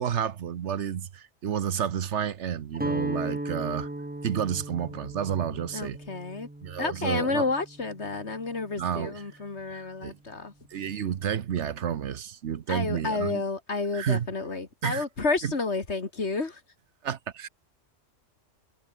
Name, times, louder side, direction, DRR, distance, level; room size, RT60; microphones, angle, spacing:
voice 1, 0.0-3.9 4.2-6.0 6.6-7.5 8.8-9.2 9.7-10.2 10.7-13.4 13.9-14.3 14.8-15.0 15.4-15.5 17.0-17.5, right 8 dB, 70° right, 1.2 m, -30 dB
Guitar, 2.7-8.8, right 1 dB, 10° right, 0.7 m, -36 dB
voice 2, 5.7-6.5 6.8-10.5 12.7-16.6, left 3 dB, 65° left, 2.8 m, -30 dB
omnidirectional pair, 1.3 m